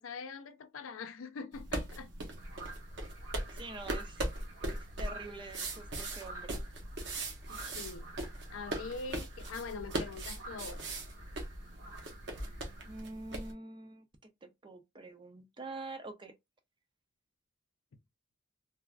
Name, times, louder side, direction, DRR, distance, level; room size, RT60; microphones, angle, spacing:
voice 1, 0.0-2.1 7.5-8.0 8.5-10.9, left 4 dB, 85° left, 0.5 m, -43 dB
sound 1, 1.5-13.5, right 1 dB, 55° right, 0.8 m, -40 dB
sound 2, 2.4-13.0, right 2 dB, 75° right, 1.7 m, -50 dB
voice 2, 3.5-4.2 4.6-6.6 12.9-14.1 14.4-16.3, right 2 dB, 25° right, 0.4 m, -46 dB
3.2 x 2.4 x 2.2 m
head